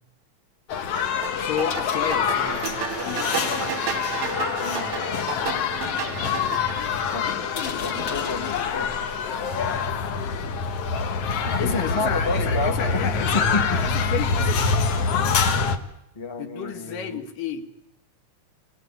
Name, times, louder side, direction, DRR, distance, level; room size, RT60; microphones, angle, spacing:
sound 1, 0.7-15.8, left 5 dB, 60° left, 1.9 m, -25 dB
sound 2, 1.2-6.9, right 9 dB, 65° right, 1.5 m, -32 dB
voice 1, 1.4-3.7 11.6-14.7 16.4-17.7, left 7 dB, 80° left, 7 dB, 3.3 m, -31 dB
sound 3, 1.5-10.2, left 4 dB, 45° left, 3.0 m, -42 dB
voice 2, 4.6-5.0 7.1-8.9 9.3-9.8 11.4-13.0 13.3-13.7 16.1-17.2, left 3 dB, 15° left, 5 dB, 0.9 m, -31 dB
26.5 x 20.5 x 9.1 m, 0.83 s
omnidirectional pair, 3.9 m